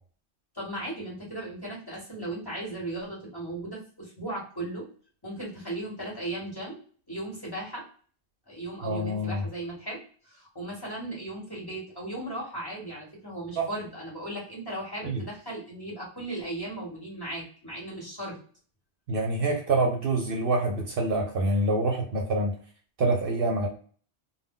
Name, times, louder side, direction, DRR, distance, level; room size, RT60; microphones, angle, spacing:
voice 1, 0.5-4.9 5.2-6.8 7.1-7.8 8.5-18.4, right 1 dB, 20° left, -4 dB, 1.0 m, -37 dB
voice 2, 8.8-9.4 13.6-13.7 15.0-15.2 19.1-22.5 23.0-23.7, right 2 dB, 60° right, 1 dB, 0.7 m, -26 dB
2.2 x 2.0 x 3.5 m, 0.43 s
omnidirectional pair, 1.1 m